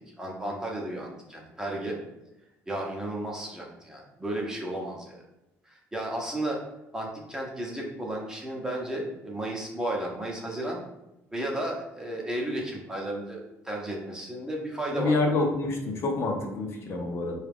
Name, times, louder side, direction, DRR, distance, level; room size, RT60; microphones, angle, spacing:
voice 1, 0.2-2.0 2.7-5.2 5.7-6.6 6.9-10.8 11.3-15.1, right 1 dB, 10° right, -2 dB, 0.8 m, -33 dB
voice 2, 14.9-17.4, left 3 dB, 45° left, 1 dB, 0.6 m, -27 dB
3.9 x 2.4 x 3.5 m, 0.94 s
cardioid pair, 120°, 6 cm